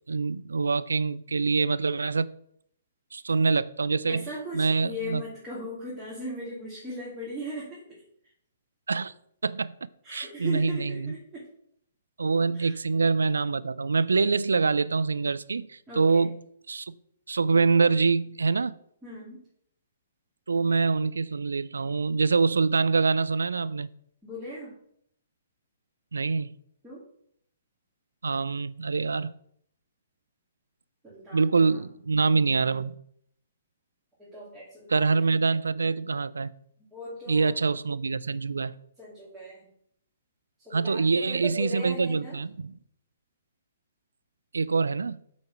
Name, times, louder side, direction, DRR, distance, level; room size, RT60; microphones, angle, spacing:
voice 1, 0.1-2.3 3.1-4.3 4.5-5.2 8.9-9.1 9.4-9.7 10.1-11.1 12.2-16.4 16.7-16.9 17.3-18.8 20.5-23.9 26.1-26.5 28.2-29.3 31.3-33.0 34.9-36.5 37.3-38.7 40.7-42.8 44.5-45.2, right 4 dB, 80° right, 0.3 m, -25 dB
voice 2, 4.1-7.8 10.0-11.5 12.5-12.8 15.9-16.3 19.0-19.4 24.2-24.8 26.8-27.0 31.0-31.8 34.2-35.3 36.9-37.5 39.0-39.7 40.6-42.4, equal, 10° right, 2.5 m, -38 dB
8.3 x 4.1 x 4.7 m
figure-of-eight pair, 125°, 0 cm